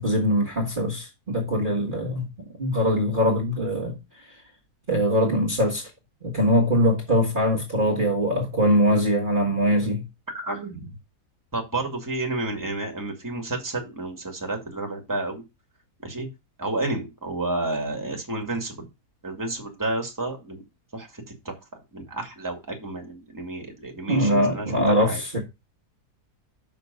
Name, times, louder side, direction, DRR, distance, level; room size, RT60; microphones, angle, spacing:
voice 1, 0.0-2.2 2.6-4.0 4.9-5.9 6.3-10.0 24.1-25.4, equal, 30° right, 1.8 m, -22 dB
voice 2, 10.3-10.8 11.5-15.4 16.0-16.3 16.6-18.9 19.2-20.6 20.9-21.6 21.9-24.7 25.0-25.2, right 2 dB, 10° right, 2.0 m, -30 dB
6.1 x 6.0 x 5.3 m
omnidirectional pair, 1.7 m